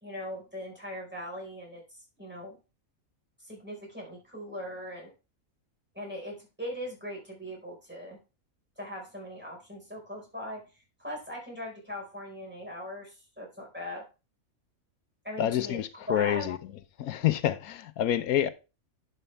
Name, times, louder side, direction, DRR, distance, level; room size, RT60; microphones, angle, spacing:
voice 1, 0.0-1.8 2.2-2.6 3.4-5.1 5.9-8.2 8.8-10.6 11.0-14.0 15.2-15.8 16.1-16.5, equal, 5° right, 4.6 m, -40 dB
voice 2, 15.4-16.6 17.0-18.5, left 11 dB, 90° left, 1.2 m, -27 dB
11.0 x 6.7 x 3.3 m
omnidirectional pair, 1.5 m